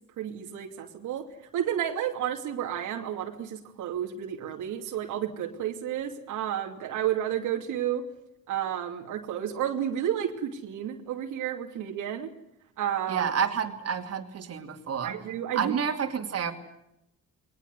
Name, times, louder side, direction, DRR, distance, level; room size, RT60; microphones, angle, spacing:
voice 1, 0.2-1.3 1.5-8.0 8.5-12.3 12.8-13.4 15.0-15.8, right 10 dB, 85° right, 2 dB, 2.8 m, -31 dB
voice 2, 13.1-15.1 15.5-16.5, right 7 dB, 55° right, 3 dB, 2.9 m, -29 dB
21.5 x 19.5 x 9.8 m, 0.84 s
cardioid pair, 90°, 30 cm